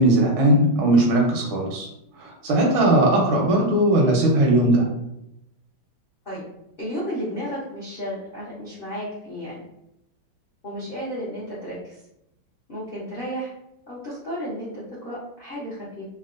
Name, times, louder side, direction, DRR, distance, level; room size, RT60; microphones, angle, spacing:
voice 1, 0.0-1.9 2.2-4.9, right 1 dB, 80° right, -1 dB, 1.6 m, -19 dB
voice 2, 6.8-9.6 10.6-12.0 12.7-13.5 13.9-16.1, equal, 60° left, -9 dB, 0.5 m, -33 dB
3.8 x 2.2 x 2.5 m, 0.82 s
omnidirectional pair, 2.2 m